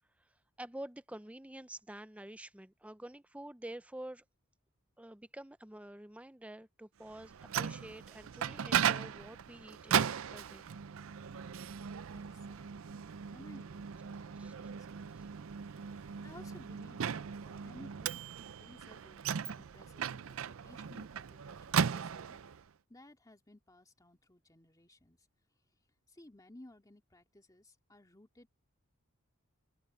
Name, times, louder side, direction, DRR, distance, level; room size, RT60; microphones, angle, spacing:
voice 1, 0.6-4.2 5.0-10.7 14.4-14.5, right 1 dB, 5° right, 0.6 m, -48 dB
Microwave oven, 7.1-22.6, right 7 dB, 70° right, 0.5 m, -37 dB
voice 2, 12.1-13.0 13.3-18.2 18.6-22.4 22.9-25.3 26.1-28.5, left 1 dB, 15° left, 2.2 m, -58 dB
open air
head